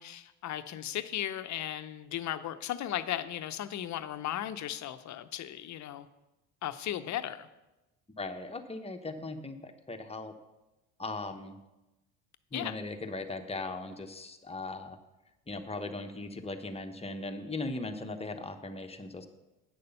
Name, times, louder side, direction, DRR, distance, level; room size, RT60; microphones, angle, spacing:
voice 1, 0.0-6.1 6.6-7.5 12.5-12.7, left 12 dB, 45° left, 12 dB, 0.7 m, -36 dB
voice 2, 8.2-10.3 11.0-11.6 12.5-15.0 15.5-19.3, left 2 dB, 15° left, 6 dB, 1.0 m, -38 dB
9.6 x 6.6 x 5.6 m, 1.0 s
hypercardioid pair, 75°, 41 cm